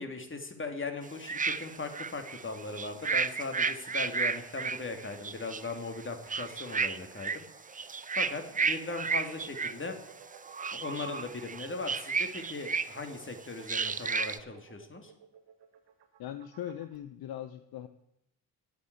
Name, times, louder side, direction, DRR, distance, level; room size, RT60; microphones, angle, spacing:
voice 1, 0.0-7.4 7.8-10.0 10.7-15.1, left 3 dB, 25° left, 5 dB, 2.7 m, -39 dB
sound 1, 1.0-7.4 7.7-9.8 10.3-13.1 13.6-14.4, right 5 dB, 20° right, 0.6 m, -32 dB
sound 2, 8.5-17.0, right 7 dB, 70° right, 1.5 m, -56 dB
voice 2, 16.2-17.9, left 11 dB, 55° left, 10 dB, 0.9 m, -40 dB
9.7 x 8.2 x 8.2 m, 0.81 s
hypercardioid pair, 50°, 44 cm